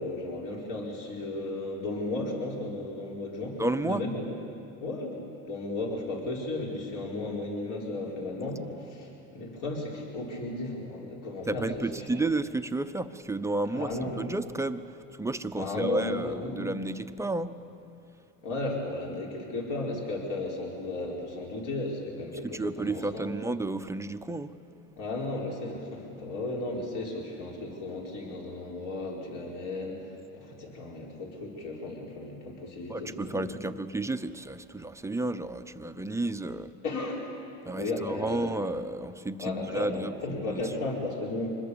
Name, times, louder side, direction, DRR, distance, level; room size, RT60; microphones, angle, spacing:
voice 1, 0.0-4.3 4.8-12.2 13.7-14.1 15.6-16.7 18.4-23.4 25.0-33.5 36.8-37.2 37.7-38.4 39.4-41.5, left 2 dB, 60° left, -2 dB, 4.6 m, -35 dB
voice 2, 3.6-4.0 11.5-17.6 22.4-24.5 32.9-36.7 37.7-40.6, right 2 dB, 10° right, 10 dB, 0.7 m, -32 dB
26.0 x 21.0 x 7.0 m, 2.8 s
cardioid pair, 115°, 36 cm